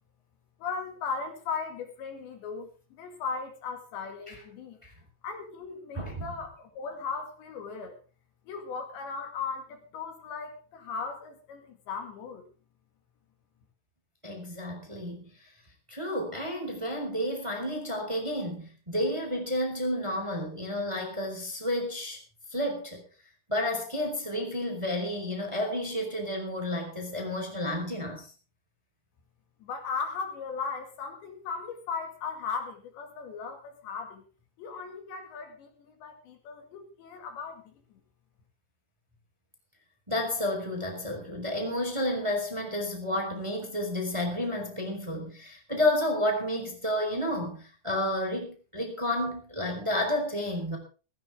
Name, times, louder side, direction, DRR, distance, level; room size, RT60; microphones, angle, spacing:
voice 1, 0.6-4.8 5.2-8.0 8.5-12.4 29.6-34.2 34.6-37.7, left 5 dB, 65° left, 5 dB, 4.4 m, -37 dB
voice 2, 5.9-6.3 14.2-15.3 15.9-22.2 22.5-23.0 23.5-28.3 40.1-50.8, left 1 dB, 5° right, 3 dB, 3.7 m, -31 dB
17.0 x 16.0 x 3.7 m, 0.36 s
omnidirectional pair, 5.6 m